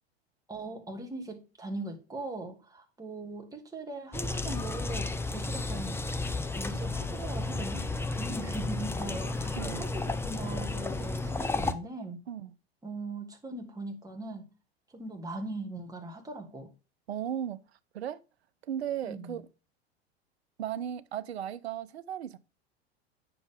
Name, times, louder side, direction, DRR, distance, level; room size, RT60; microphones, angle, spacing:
voice 1, 0.5-6.0 6.6-12.2 12.8-14.5 14.9-16.7 19.0-19.4, right 2 dB, 10° right, 2.5 m, -40 dB
sound 1, 4.1-11.7, left 3 dB, 10° left, 0.6 m, -33 dB
voice 2, 9.6-9.9 12.3-12.5 17.1-17.6 17.9-18.2 18.7-19.4 20.6-22.4, right 10 dB, 75° right, 0.7 m, -35 dB
9.2 x 7.0 x 3.7 m
figure-of-eight pair, 85°, 32 cm